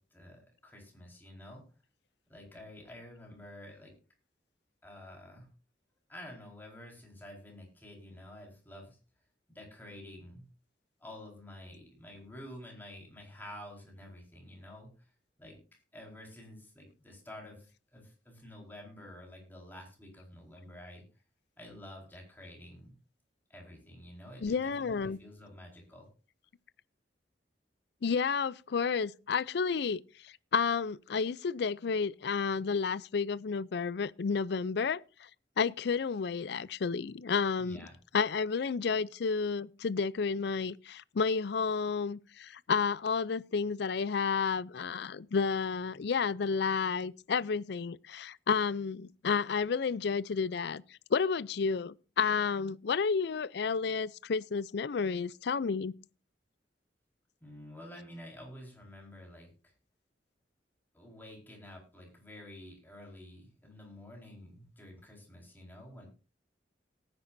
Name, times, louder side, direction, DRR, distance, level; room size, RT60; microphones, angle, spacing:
voice 1, 0.0-1.7 2.3-3.9 4.8-5.5 6.1-9.0 9.5-10.5 11.0-15.1 15.4-15.6 15.9-21.0 21.6-23.0 23.5-26.1 37.6-38.0 57.4-59.7 60.9-66.1, left 1 dB, 10° left, 4.5 m, -50 dB
voice 2, 24.4-25.2 28.0-35.0 35.6-37.9 38.1-50.8 51.1-55.9, left 5 dB, 65° left, 0.5 m, -31 dB
18.5 x 9.7 x 2.7 m
head